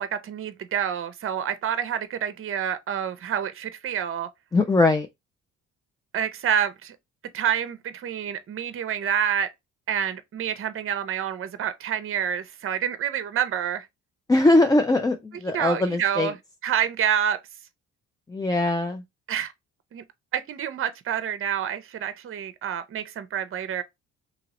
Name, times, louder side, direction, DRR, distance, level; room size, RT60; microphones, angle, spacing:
voice 1, 0.0-4.3 6.1-7.0 7.3-9.5 9.9-13.9 15.5-16.4 16.6-17.4 19.3-19.5 19.9-20.0 20.3-23.8, right 9 dB, 45° right, 0.6 m, -28 dB
voice 2, 4.5-5.1 14.3-16.3 18.3-19.0, left 2 dB, 15° left, 0.3 m, -21 dB
2.9 x 2.9 x 2.8 m
cardioid pair, 90°, 30 cm